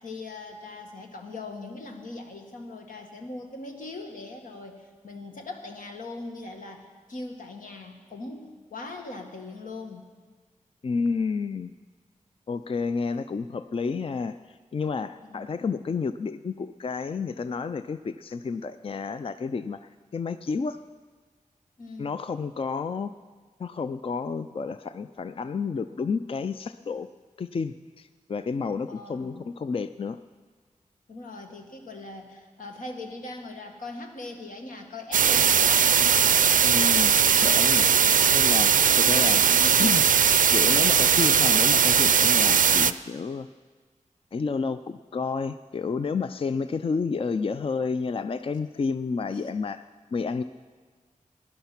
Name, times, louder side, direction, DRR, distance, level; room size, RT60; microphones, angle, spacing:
voice 1, 0.0-10.1 15.3-15.7 21.8-22.2 28.9-29.5 31.1-36.3 38.7-39.8 49.3-49.5, left 2 dB, 85° left, 3 dB, 1.7 m, -40 dB
voice 2, 10.8-11.7 12.5-19.8 20.1-20.8 22.0-23.1 23.6-27.1 27.4-30.2 36.6-37.1 37.4-37.9 38.3-38.7 39.1-39.4 39.8-40.0 40.5-43.5 44.3-49.8 50.1-50.4, left 5 dB, 45° left, 11 dB, 0.4 m, -30 dB
sound 1, 35.1-42.9, right 7 dB, 80° right, 0.4 m, -19 dB
17.0 x 11.0 x 5.9 m, 1.5 s
wide cardioid pair, 80°, 14 cm